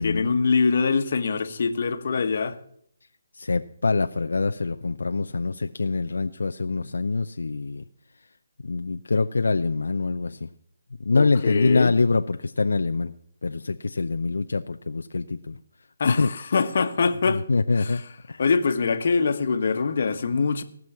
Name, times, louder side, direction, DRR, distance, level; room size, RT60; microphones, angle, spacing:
voice 1, 0.0-2.6 11.1-11.9 16.0-17.4 17.7-18.0 18.4-20.6, left 5 dB, 55° left, 1.2 m, -23 dB
voice 2, 3.4-7.8 8.6-10.5 11.0-13.1 13.4-15.6 16.2-16.3 17.3-18.0 18.3-18.4, left 3 dB, 85° left, 0.6 m, -25 dB
18.0 x 6.2 x 7.2 m
hypercardioid pair, 165°, 0 cm